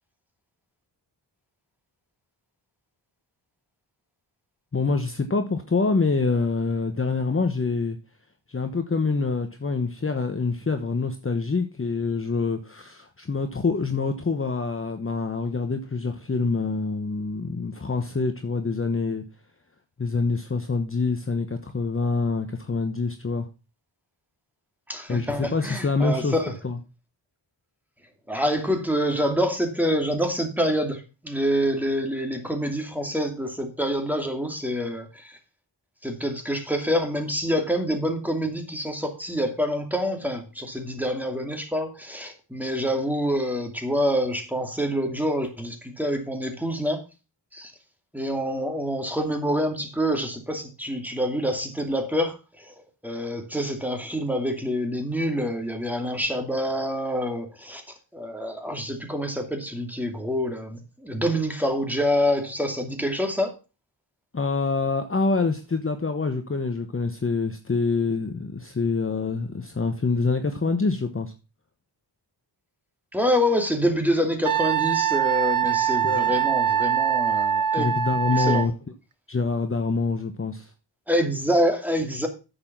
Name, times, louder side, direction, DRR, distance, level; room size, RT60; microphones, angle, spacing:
voice 1, 4.7-8.0 8.5-19.2 20.0-23.5 25.1-26.4 26.6-26.8 64.3-71.3 76.0-76.4 77.7-78.7 79.3-80.7, left 4 dB, 30° left, 6 dB, 1.1 m, -26 dB
voice 2, 24.9-26.5 28.3-35.4 36.0-47.0 47.5-47.7 48.1-52.7 53.0-57.8 58.1-63.5 73.1-77.9 78.3-78.7 81.1-82.3, equal, 5° right, 4 dB, 2.5 m, -26 dB
Wind instrument woodwind instrument, 74.4-78.7, right 9 dB, 45° right, 0.7 m, -23 dB
9.5 x 7.1 x 6.0 m, 0.31 s
wide cardioid pair, 100°, 45 cm